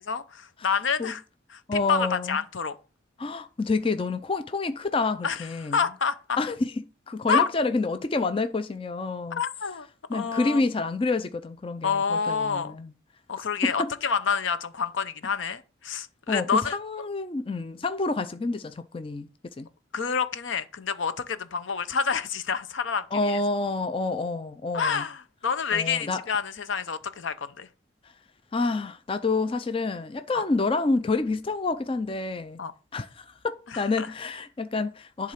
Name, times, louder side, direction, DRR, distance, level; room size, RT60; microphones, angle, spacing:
voice 1, 0.1-1.2 1.5-1.6 1.9-2.8 5.2-6.4 7.3-7.5 9.4-9.9 10.1-10.6 11.8-12.8 13.3-16.8 19.9-23.4 24.7-27.7 30.3-30.4 32.6-32.7 33.7-34.1, left 6 dB, 75° left, 0.7 m, -28 dB
voice 2, 1.7-2.4 3.2-5.8 6.4-6.7 7.1-9.4 10.1-12.9 13.6-13.9 16.3-19.3 19.6-19.7 23.1-25.0 25.7-26.2 28.5-32.6 32.9-35.3, left 3 dB, 25° left, 0.4 m, -28 dB
10.5 x 3.7 x 5.7 m
head